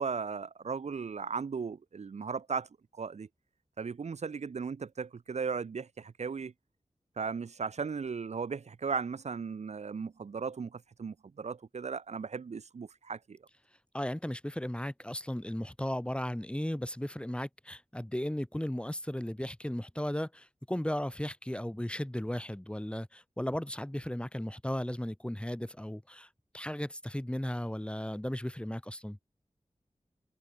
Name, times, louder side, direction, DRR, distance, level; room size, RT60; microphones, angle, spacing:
voice 1, 0.0-3.3 3.8-6.5 7.2-13.4, right 5 dB, 75° right, 0.7 m, -36 dB
voice 2, 13.9-26.3 26.5-29.2, left 1 dB, 10° left, 4.4 m, -35 dB
wide cardioid pair, 75°, 11 cm